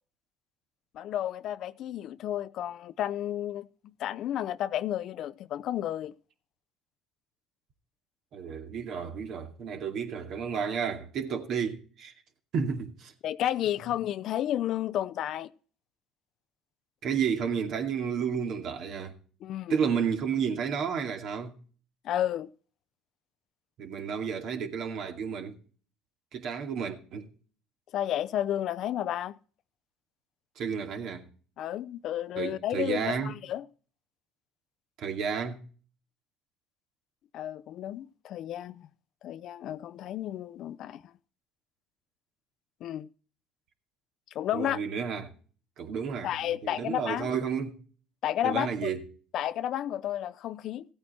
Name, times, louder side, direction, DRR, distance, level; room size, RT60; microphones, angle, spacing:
voice 1, 0.9-6.1 13.2-15.5 19.4-19.8 22.0-22.5 27.9-29.4 31.6-33.6 37.3-38.9 39.2-41.0 42.8-43.1 44.3-44.8 46.2-47.3 48.2-48.9 49.3-50.9, left 11 dB, 60° left, 0.6 m, -32 dB
voice 2, 8.3-12.1 12.5-13.1 17.0-19.2 19.7-21.6 23.8-25.6 26.3-27.3 30.6-31.3 32.4-33.4 35.0-35.6 44.5-45.3 45.8-47.8 48.4-49.1, right 6 dB, 60° right, 2.4 m, -31 dB
15.5 x 8.8 x 4.3 m
supercardioid pair, 85°, 0 cm